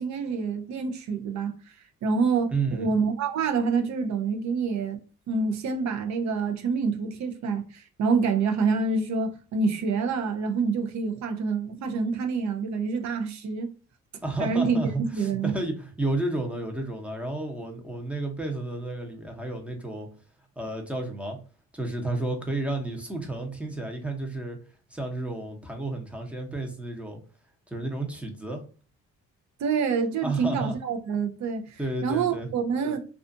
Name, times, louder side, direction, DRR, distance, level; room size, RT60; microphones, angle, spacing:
voice 1, 0.0-1.7 2.0-5.0 5.3-13.7 14.4-14.8 15.1-15.5 29.6-33.1, right 5 dB, 65° right, 0.6 m, -27 dB
voice 2, 2.5-2.9 14.2-20.1 20.6-21.4 21.7-24.6 24.9-27.2 27.7-28.6 30.2-30.7 31.8-32.5, right 2 dB, 5° right, 0.7 m, -31 dB
2.4 x 2.4 x 2.5 m
cardioid pair, 90°, 30 cm